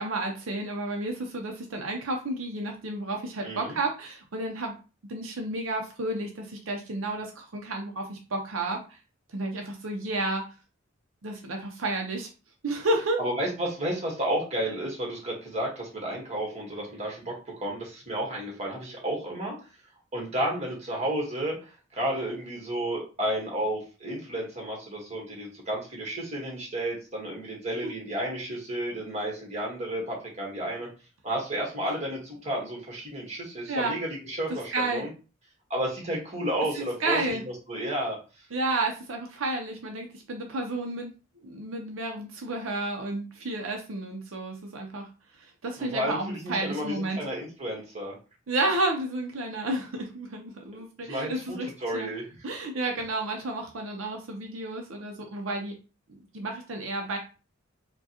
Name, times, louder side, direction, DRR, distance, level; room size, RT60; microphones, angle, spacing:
voice 1, 0.0-4.8 5.1-9.0 9.3-10.4 11.2-12.3 12.6-13.2 33.7-33.9 34.7-35.1 36.7-37.4 38.5-45.1 45.4-47.2 48.5-52.1 52.4-55.7 56.1-57.2, right 2 dB, 80° right, 2 dB, 0.6 m, -31 dB
voice 2, 3.4-3.8 13.2-19.5 20.1-30.9 31.2-35.1 35.7-37.2 37.7-38.2 45.8-48.2 51.0-52.2, right 1 dB, 35° right, -2 dB, 1.4 m, -32 dB
4.5 x 2.2 x 2.9 m, 0.33 s
head